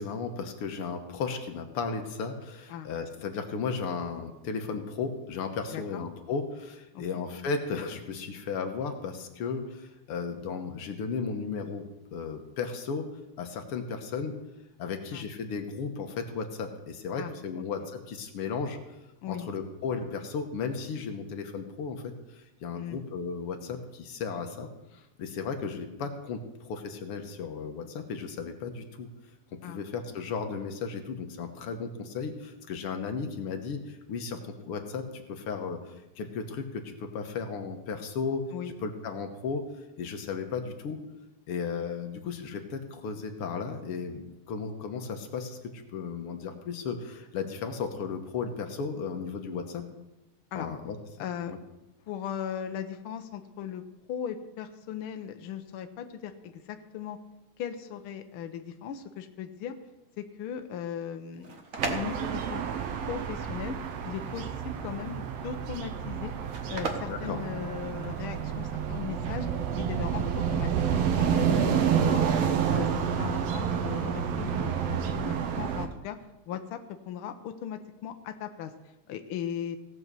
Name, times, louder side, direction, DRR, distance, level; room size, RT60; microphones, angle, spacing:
voice 1, 0.0-11.8 12.1-13.1 13.4-14.3 14.8-18.8 19.3-29.1 29.6-38.4 38.8-39.6 40.0-41.0 41.5-49.9 50.6-51.0 51.5-51.6 67.1-67.4, left 5 dB, 60° left, 5 dB, 1.8 m, -35 dB
voice 2, 5.7-6.0 6.9-7.2 15.1-15.3 17.1-17.3 19.2-19.5 22.7-23.0 29.6-29.8 38.5-38.7 50.5-50.7 51.2-51.5 52.1-57.2 57.6-59.7 60.2-62.6 63.1-63.8 64.0-66.3 66.7-69.5 69.8-72.2 72.6-76.2 76.5-76.8 77.1-78.7 79.1-79.8, left 9 dB, 80° left, 7 dB, 1.2 m, -38 dB
sound 1, 61.2-68.3, right 3 dB, 45° right, 1.1 m, -39 dB
sound 2, 61.8-75.9, right 8 dB, 65° right, 1.8 m, -29 dB
17.0 x 6.1 x 6.8 m, 0.99 s
omnidirectional pair, 3.4 m